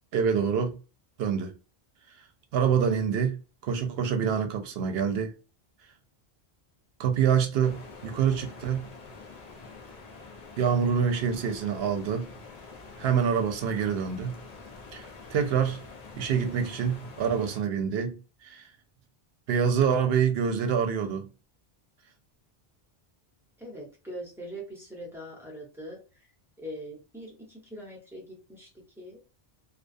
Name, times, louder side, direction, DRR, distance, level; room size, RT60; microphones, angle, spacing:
voice 1, 0.1-0.8 1.2-1.6 2.5-5.3 7.0-8.9 10.6-12.3 13.0-14.4 14.9-15.8 16.2-18.2 18.4-18.7 19.5-21.3, right 7 dB, 75° right, 0.8 m, -26 dB
sound 1, 7.6-17.6, left 4 dB, 50° left, 0.6 m, -46 dB
voice 2, 23.6-26.3 26.6-28.7 29.0-29.2, equal, 5° right, 0.9 m, -42 dB
2.4 x 2.2 x 2.5 m
omnidirectional pair, 1.1 m